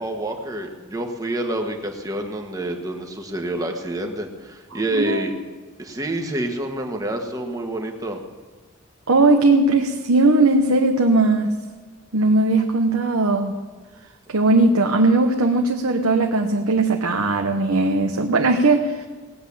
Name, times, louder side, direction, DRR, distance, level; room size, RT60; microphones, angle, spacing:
voice 1, 0.0-5.3 5.8-8.2, right 1 dB, 15° right, 3 dB, 1.4 m, -28 dB
voice 2, 4.9-5.3 9.1-11.5 12.1-13.6 14.3-19.1, right 2 dB, 85° right, 3 dB, 1.0 m, -18 dB
18.5 x 7.8 x 8.6 m, 1.3 s
head